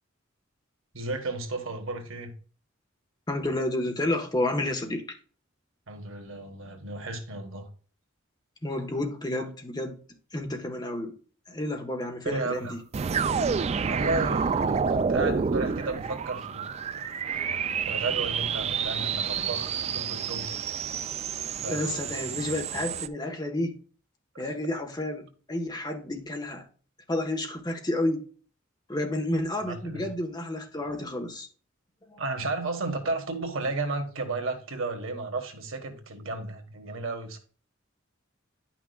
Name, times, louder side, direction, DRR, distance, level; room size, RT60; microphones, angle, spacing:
voice 1, 0.9-2.3 5.9-7.7 9.4-9.5 12.2-12.7 13.8-17.0 17.9-20.7 21.6-22.4 29.6-30.1 32.2-37.4, right 3 dB, 75° right, 1.4 m, -33 dB
voice 2, 3.3-5.2 8.6-10.0 10.3-11.1 11.5-12.8 21.7-23.8 24.4-26.7 27.1-28.2 28.9-31.5 32.1-32.2, left 1 dB, 20° left, 1.2 m, -30 dB
sound 1, 12.9-23.1, right 6 dB, 30° right, 0.3 m, -29 dB
10.5 x 5.9 x 2.3 m
head